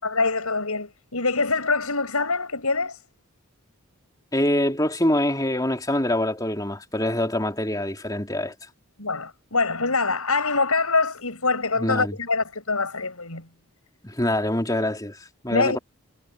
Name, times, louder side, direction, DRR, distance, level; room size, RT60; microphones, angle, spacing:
voice 1, 0.0-3.0 9.0-13.4 15.5-15.8, left 3 dB, 80° left, 6.4 m, -24 dB
voice 2, 4.3-8.5 11.8-12.2 14.0-15.8, left 1 dB, 15° left, 3.4 m, -25 dB
head